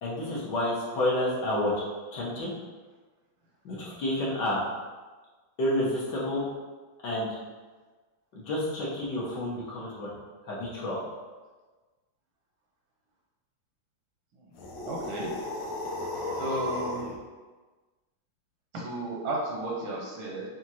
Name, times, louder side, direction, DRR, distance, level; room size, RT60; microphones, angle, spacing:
voice 1, 0.0-1.8 2.1-2.5 3.6-4.6 5.6-6.4 7.0-7.3 8.3-10.1 10.5-11.0, left 1 dB, 60° left, -6 dB, 1.4 m, -29 dB
sound 1, 14.5-17.2, left 2 dB, 85° left, 1.6 m, -35 dB
voice 2, 14.9-15.3 16.4-17.0 18.7-20.4, right 1 dB, 85° right, -3 dB, 1.6 m, -33 dB
6.0 x 2.5 x 2.8 m, 1.3 s
omnidirectional pair, 2.3 m